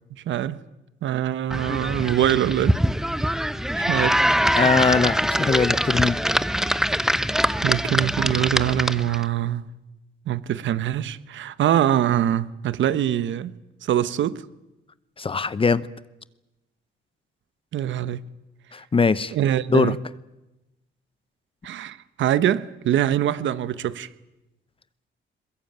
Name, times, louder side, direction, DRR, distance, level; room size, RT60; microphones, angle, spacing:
voice 1, 0.3-0.6 1.0-2.8 3.8-4.2 7.6-9.7 10.3-13.5 13.8-14.4 17.7-18.3 19.3-20.0 21.6-24.1, right 11 dB, 70° right, 1.2 m, -23 dB
sound 1, 1.5-9.2, equal, ahead, 0.8 m, -23 dB
voice 2, 4.5-6.2 15.2-15.9 18.7-19.3 19.7-19.9, left 4 dB, 25° left, 0.8 m, -21 dB
22.0 x 22.0 x 8.9 m
cardioid pair, 90°, 20 cm